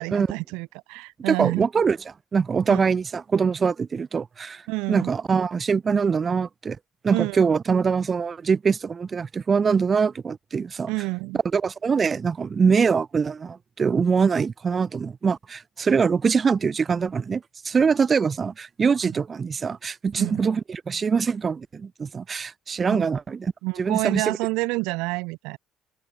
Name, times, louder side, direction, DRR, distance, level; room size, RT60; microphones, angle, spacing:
voice 1, 0.0-1.7 2.7-2.8 4.7-5.1 7.1-7.4 10.9-11.4 20.2-20.4 22.9-23.1 23.6-25.6, right 26 dB, 85° right, 7.3 m, -28 dB
voice 2, 1.3-2.0 2.3-4.6 4.9-6.8 7.0-10.9 11.5-23.5 23.8-24.4, right 5 dB, 35° right, 7.4 m, -23 dB
supercardioid pair, 90°, 0 cm